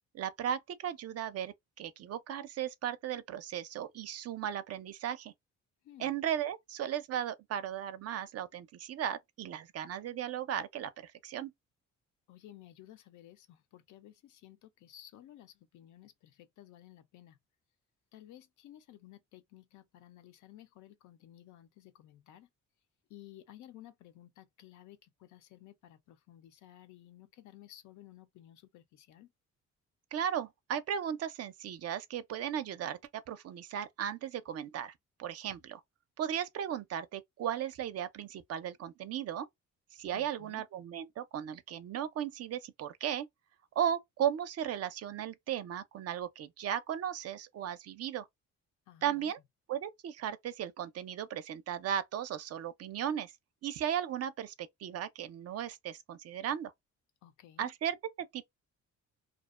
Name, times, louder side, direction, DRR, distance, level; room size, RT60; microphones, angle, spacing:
voice 1, 0.1-5.3 6.0-11.5 30.1-33.0 33.3-34.9 35.2-35.8 36.2-39.5 40.0-43.3 43.8-48.3 49.0-49.4 49.7-53.3 53.6-56.7 57.6-58.4, right 9 dB, 55° right, 0.4 m, -36 dB
voice 2, 12.3-17.4 18.1-22.5 23.1-29.3 40.1-40.6 48.9-49.3 57.2-57.7, left 13 dB, 75° left, 0.5 m, -55 dB
2.4 x 2.1 x 2.3 m
cardioid pair, 90°, 30 cm